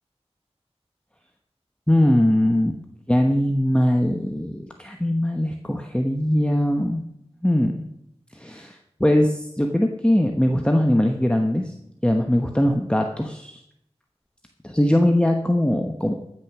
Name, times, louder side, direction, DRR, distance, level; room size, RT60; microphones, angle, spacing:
voice 1, 1.9-2.8 3.1-7.0 7.4-7.8 8.3-11.7 12.0-13.6 14.6-16.1, left 1 dB, 10° left, 4 dB, 1.1 m, -21 dB
15.0 x 6.5 x 6.0 m, 0.77 s
wide cardioid pair, 45°, 11 cm